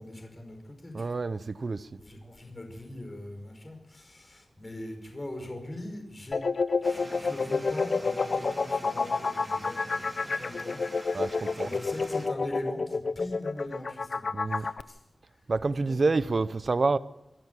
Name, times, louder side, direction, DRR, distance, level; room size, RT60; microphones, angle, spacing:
voice 1, 0.0-1.2 1.9-6.4 6.8-10.8 11.1-11.3 11.6-15.0 15.8-16.0, left 1 dB, 30° left, 5.3 m, -41 dB
voice 2, 0.9-1.9 11.1-11.8 14.3-14.7 15.5-17.0, right 3 dB, 55° right, 0.8 m, -28 dB
sound 1, 6.3-14.8, left 4 dB, 65° left, 0.8 m, -29 dB
sound 2, 6.8-12.3, right 1 dB, 20° right, 3.7 m, -46 dB
26.5 x 12.0 x 8.3 m
wide cardioid pair, 85°, 0 cm